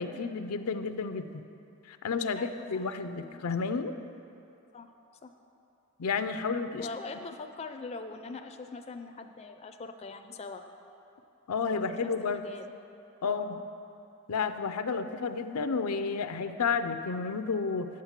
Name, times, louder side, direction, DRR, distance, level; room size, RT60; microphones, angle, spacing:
voice 1, 0.0-1.4 1.9-3.9 6.0-6.9 11.5-12.4 13.2-13.5 14.3-17.9, left 5 dB, 80° left, 9 dB, 0.5 m, -31 dB
voice 2, 2.4-3.7 4.7-4.9 5.2-5.3 6.8-10.6 11.7-12.7 13.2-13.6, left 3 dB, 30° left, 6 dB, 0.4 m, -43 dB
8.7 x 7.4 x 7.2 m, 2.8 s
head